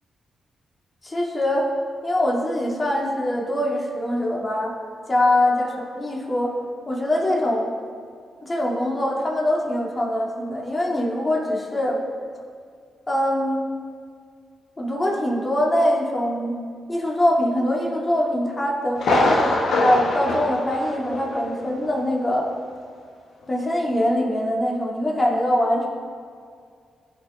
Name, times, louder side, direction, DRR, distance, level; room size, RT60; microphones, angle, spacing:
voice 1, 1.0-1.7 2.0-4.8 5.1-6.6 6.9-7.7 8.4-12.0 13.1-13.6 14.8-16.6 16.9-22.5 23.5-25.9, left 1 dB, 35° left, -2 dB, 2.6 m, -23 dB
Thunder, 19.0-21.5 21.8-21.9 22.5-22.6, left 2 dB, 75° left, 1.4 m, -23 dB
15.5 x 5.7 x 3.9 m, 2.1 s
supercardioid pair, 45°, 0 cm